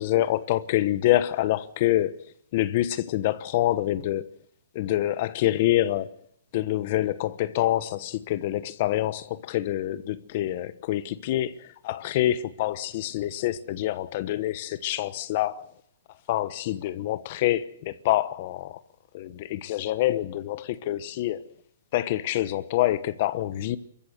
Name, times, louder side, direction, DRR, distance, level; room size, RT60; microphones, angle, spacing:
voice 1, 0.0-2.2 2.5-4.3 4.7-6.1 6.5-15.6 16.3-18.8 19.1-21.4 21.9-23.8, left 14 dB, 40° left, 1.1 m, -26 dB
25.5 x 14.5 x 8.0 m
hypercardioid pair, 155°, 0 cm